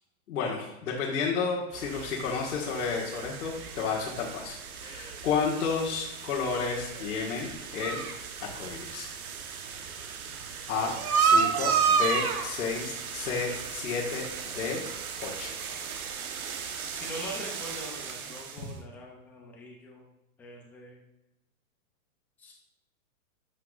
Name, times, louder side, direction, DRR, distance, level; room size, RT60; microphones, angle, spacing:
voice 1, 0.3-8.0 8.4-9.1 10.7-14.3 14.5-14.8 15.2-15.5, left 5 dB, 85° left, -5 dB, 1.6 m, -31 dB
sound 1, 1.7-18.7, right 6 dB, 80° right, 1.1 m, -32 dB
voice 2, 16.7-20.0 20.4-21.0 22.4-22.5, equal, 5° left, -1 dB, 0.3 m, -43 dB
11.5 x 5.8 x 2.4 m, 0.94 s
hypercardioid pair, 135°, 42 cm